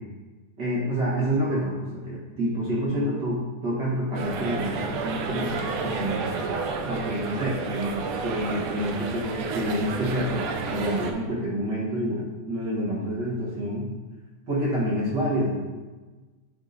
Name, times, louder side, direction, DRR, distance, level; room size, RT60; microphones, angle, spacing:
voice 1, 0.6-6.3 6.9-13.8 14.5-15.7, equal, 45° right, -6 dB, 1.6 m, -28 dB
sound 1, 4.1-11.1, right 4 dB, 80° right, 2.2 m, -31 dB
10.0 x 3.6 x 4.1 m, 1.2 s
omnidirectional pair, 3.6 m